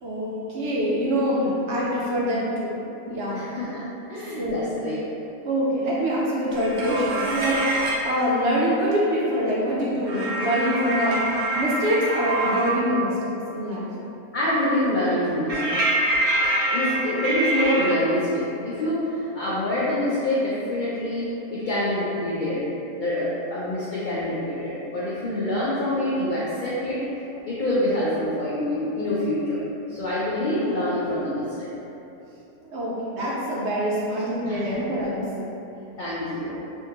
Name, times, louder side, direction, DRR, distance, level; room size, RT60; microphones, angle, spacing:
voice 1, 0.0-3.5 4.4-4.6 5.4-11.2 11.6-13.9 32.6-35.5, equal, 65° right, -6 dB, 0.7 m, -25 dB
voice 2, 3.3-3.8 4.1-5.1 14.3-15.8 16.7-22.6 23.0-27.1 27.5-29.6 29.9-31.7 34.5-34.7 36.0-36.6, left 1 dB, 80° left, -8 dB, 0.4 m, -26 dB
sound 1, 6.5-8.1 10.1-12.9 15.5-17.9, right 1 dB, 85° right, 1.1 m, -25 dB
3.5 x 2.7 x 2.8 m, 3.0 s
omnidirectional pair, 1.5 m